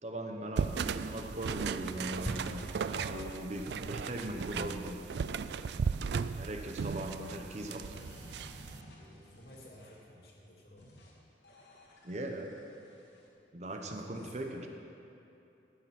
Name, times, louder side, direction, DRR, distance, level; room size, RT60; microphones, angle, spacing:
voice 1, 0.0-5.0 6.2-7.9 12.0-12.5 13.5-14.7, right 1 dB, 40° right, 3 dB, 0.8 m, -40 dB
sound 1, 0.6-8.8, right 6 dB, 70° right, 0.3 m, -36 dB
sound 2, 2.2-3.9, left 1 dB, 5° left, 0.3 m, -44 dB
sound 3, 7.9-10.1 10.8-11.1 11.4-13.3, equal, 80° left, 2.2 m, -55 dB
voice 2, 9.0-10.9 13.6-14.7, left 1 dB, 60° left, -3 dB, 2.4 m, -55 dB
12.5 x 8.5 x 5.9 m, 2.8 s
head